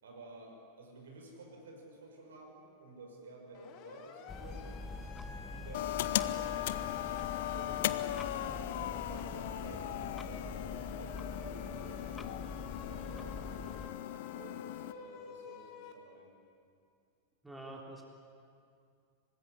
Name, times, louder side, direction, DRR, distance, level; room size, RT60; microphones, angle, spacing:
voice 1, 0.0-5.1 5.5-7.9 8.3-13.5 14.3-16.3, right 2 dB, 65° right, 2 dB, 5.8 m, -52 dB
Siren, 3.5-15.9, left 7 dB, 40° left, 2.6 m, -51 dB
sound 1, 4.3-13.9, left 3 dB, 15° left, 1.1 m, -45 dB
sound 2, 5.7-14.9, left 14 dB, 55° left, 0.8 m, -38 dB
voice 2, 17.4-18.0, right 2 dB, 5° right, -1 dB, 3.5 m, -46 dB
24.5 x 20.0 x 9.9 m, 2.4 s
figure-of-eight pair, 90°, 0 cm